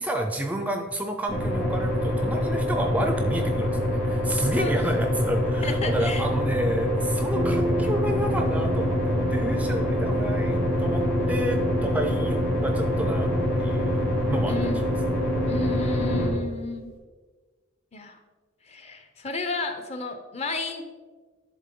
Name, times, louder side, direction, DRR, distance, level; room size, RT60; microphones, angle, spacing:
voice 1, 0.0-11.0 11.3-14.9, right 1 dB, 10° right, 5 dB, 0.4 m, -30 dB
sound 1, 1.3-16.3, left 1 dB, 80° left, 2.4 m, -26 dB
voice 2, 5.6-6.3 14.5-14.8 15.5-16.9 17.9-18.2 18.6-20.8, left 3 dB, 30° left, 7 dB, 0.6 m, -32 dB
Brass instrument, 7.3-16.8, right 2 dB, 60° left, 2.4 m, -31 dB
11.0 x 3.7 x 3.7 m, 1.4 s
head